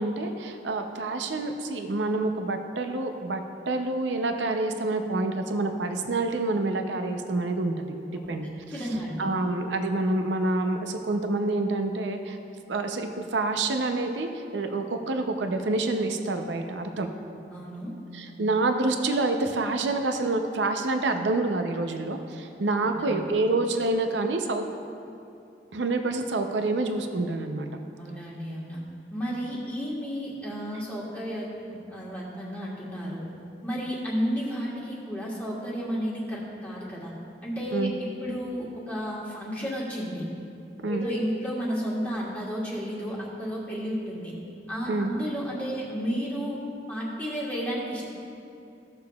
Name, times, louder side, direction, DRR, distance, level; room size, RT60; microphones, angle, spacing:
voice 1, 0.0-7.9 8.3-8.5 8.7-8.8 9.2-12.4 12.7-17.1 18.1-24.6 25.7-27.7 37.7-37.9 40.8-41.1 44.9-45.1, right 2 dB, 85° right, 5 dB, 0.6 m, -27 dB
voice 2, 8.7-9.3 17.5-17.9 22.8-23.3 28.0-28.8 29.1-33.3 33.6-37.1 37.4-40.2 40.8-44.3 44.7-46.6 46.9-48.1, equal, 10° left, -7 dB, 1.4 m, -32 dB
15.5 x 6.7 x 2.3 m, 2.7 s
head